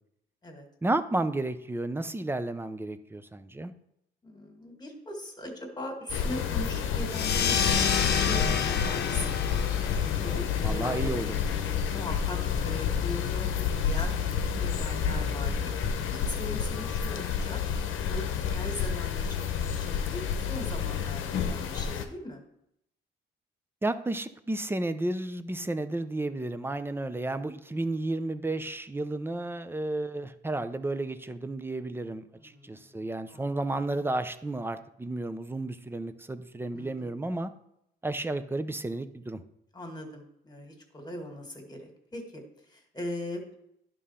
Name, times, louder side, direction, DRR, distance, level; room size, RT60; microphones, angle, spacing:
voice 1, 0.8-3.7 10.6-11.3 23.8-37.5 38.0-39.4, right 2 dB, 10° right, 11 dB, 0.6 m, -32 dB
voice 2, 4.2-9.4 9.9-13.5 13.8-15.7 16.1-17.6 18.0-22.4 25.5-25.9 32.3-33.6 36.7-37.2 39.7-43.5, left 1 dB, 20° left, 3 dB, 2.0 m, -40 dB
sound 1, 6.1-22.0, left 7 dB, 85° left, 0.9 m, -30 dB
sound 2, 7.1-12.2, left 7 dB, 55° left, 0.8 m, -29 dB
11.0 x 3.8 x 5.6 m, 0.77 s
cardioid pair, 90°, 20 cm